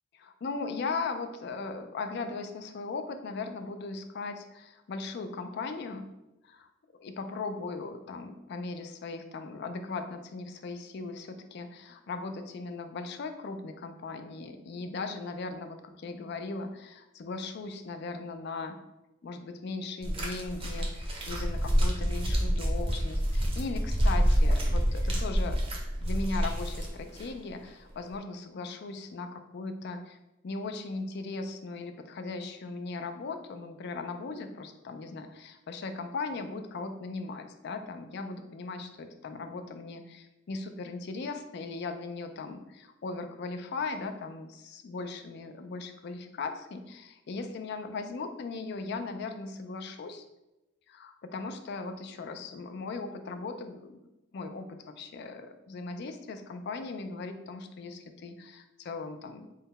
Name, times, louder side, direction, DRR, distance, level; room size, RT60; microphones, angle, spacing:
voice 1, 0.4-6.1 6.4-6.7 7.0-18.8 19.2-25.6 26.0-30.2 30.4-50.2 50.9-54.0 54.3-59.5, left 3 dB, 50° left, 7 dB, 0.3 m, -38 dB
sound 1, 20.0-27.3 28.1-28.2, equal, 25° right, 0.6 m, -27 dB
3.8 x 2.1 x 4.0 m, 0.98 s
head